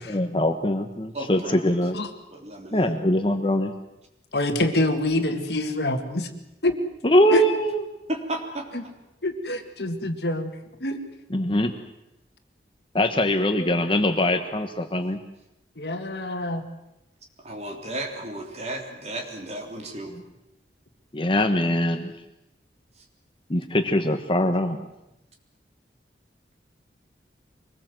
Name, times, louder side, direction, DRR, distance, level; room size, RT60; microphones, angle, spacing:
voice 1, 0.1-2.0 2.7-3.7 7.0-7.8 11.3-11.7 12.9-15.2 20.1-20.2 21.1-22.1 23.5-24.8, left 1 dB, 30° left, 7 dB, 1.2 m, -22 dB
voice 2, 1.1-1.8 2.3-2.9 8.1-8.7 17.4-20.1, right 1 dB, 40° right, 2 dB, 3.5 m, -34 dB
voice 3, 4.3-6.3 6.6-6.8 7.3-7.4 8.7-8.8 9.2-10.5 10.8-11.0 15.8-16.7, left 1 dB, 65° left, 7 dB, 2.0 m, -26 dB
24.5 x 20.0 x 7.7 m, 0.92 s
head